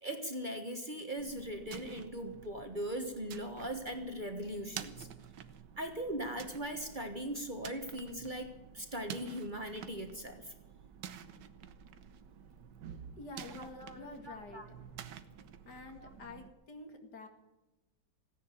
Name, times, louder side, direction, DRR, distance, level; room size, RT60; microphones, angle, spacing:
voice 1, 0.0-5.1 5.8-10.5 13.6-14.7 16.0-16.1, right 1 dB, 30° right, 5 dB, 1.5 m, -40 dB
sound 1, 1.2-16.5, right 8 dB, 85° right, 1.6 m, -50 dB
voice 2, 13.2-14.8 15.6-17.3, left 2 dB, 70° left, 5 dB, 2.7 m, -48 dB
16.0 x 10.5 x 8.2 m, 1.0 s
omnidirectional pair, 1.9 m